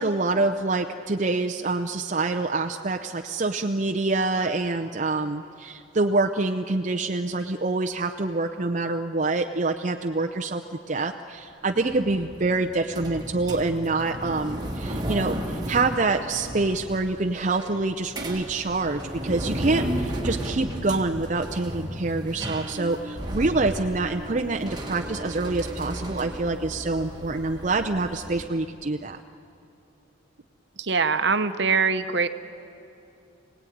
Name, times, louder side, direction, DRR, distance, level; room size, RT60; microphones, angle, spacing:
voice 1, 0.0-29.2, right 3 dB, 40° right, 4 dB, 0.6 m, -26 dB
sound 1, 11.8-28.5, right 1 dB, 20° right, 1.8 m, -34 dB
voice 2, 30.8-32.3, right 5 dB, 60° right, 9 dB, 0.9 m, -23 dB
27.5 x 18.0 x 9.3 m, 2.8 s
head